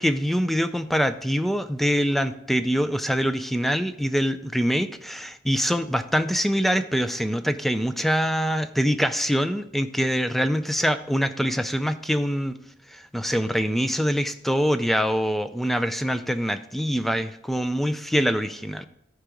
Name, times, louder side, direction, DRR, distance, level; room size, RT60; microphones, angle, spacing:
voice 1, 0.0-12.6 12.9-18.9, equal, ahead, 10 dB, 0.4 m, -24 dB
12.0 x 4.8 x 5.1 m, 0.76 s
head